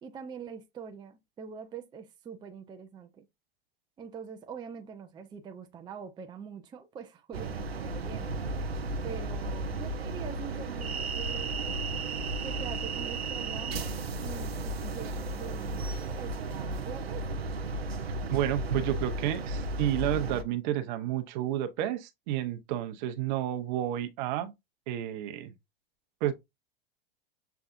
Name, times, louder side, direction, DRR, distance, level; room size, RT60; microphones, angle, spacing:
voice 1, 0.0-3.2 4.0-8.4 9.0-11.6 12.4-17.3, right 6 dB, 15° right, 0.5 m, -44 dB
sound 1, 7.3-20.4, right 2 dB, 90° right, 0.6 m, -34 dB
voice 2, 18.3-24.5 24.9-25.5 26.2-26.3, right 12 dB, 50° right, 0.7 m, -31 dB
6.8 x 2.3 x 2.5 m
hypercardioid pair, 95°, 30 cm